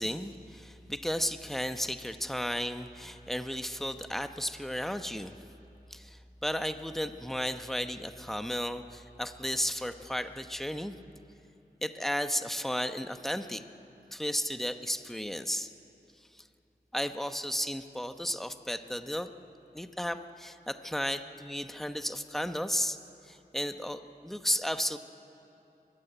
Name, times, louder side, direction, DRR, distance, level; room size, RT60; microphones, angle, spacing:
voice 1, 0.0-5.3 5.9-11.0 11.8-13.6 14.1-15.7 16.3-16.5 16.9-19.3 19.7-23.0 23.2-25.0, equal, ahead, 9 dB, 0.9 m, -34 dB
23.0 x 15.0 x 10.0 m, 2.9 s
wide cardioid pair, 65°, 17 cm